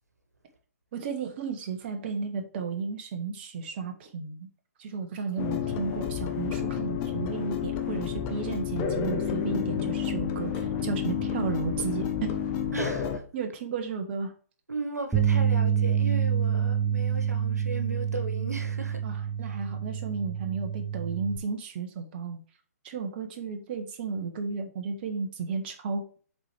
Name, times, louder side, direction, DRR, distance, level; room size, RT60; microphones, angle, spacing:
voice 1, 0.9-4.5 4.8-12.3 13.3-14.3 19.0-22.4 22.8-26.2, right 5 dB, 40° right, 1.1 m, -33 dB
sound 1, 5.4-13.2, left 8 dB, 25° left, 0.9 m, -30 dB
voice 2, 12.7-13.2 14.7-19.0 19.5-19.6, right 3 dB, 85° right, 1.4 m, -36 dB
sound 2, 15.1-21.4, right 8 dB, 5° right, 0.9 m, -27 dB
7.4 x 4.3 x 3.3 m
figure-of-eight pair, 130°, 9 cm